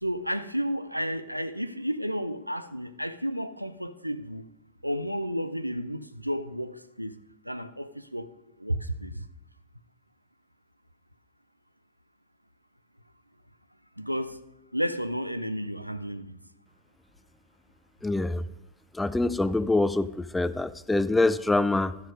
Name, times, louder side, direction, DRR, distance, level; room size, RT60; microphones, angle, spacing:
voice 1, 0.0-4.5 4.8-7.1 7.4-8.3 8.6-9.3 14.0-14.4 14.7-16.3, equal, 90° right, 0.4 m, -32 dB
voice 2, 18.0-18.4 18.9-22.0, left 2 dB, 5° left, 0.3 m, -25 dB
12.5 x 6.3 x 5.2 m
figure-of-eight pair, 90°, 0 cm